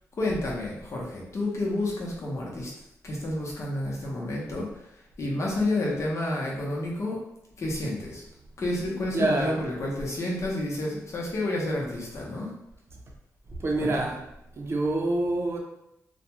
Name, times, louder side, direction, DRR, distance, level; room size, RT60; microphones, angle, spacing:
voice 1, 0.1-2.7 3.0-7.2 7.6-8.2 8.6-12.5 13.8-13.9, left 1 dB, 55° left, -3 dB, 0.8 m, -30 dB
voice 2, 9.1-9.6 13.6-14.2 14.6-15.6, right 2 dB, 45° right, 0 dB, 0.5 m, -26 dB
2.4 x 2.2 x 2.9 m, 0.83 s
cardioid pair, 95°, 6 cm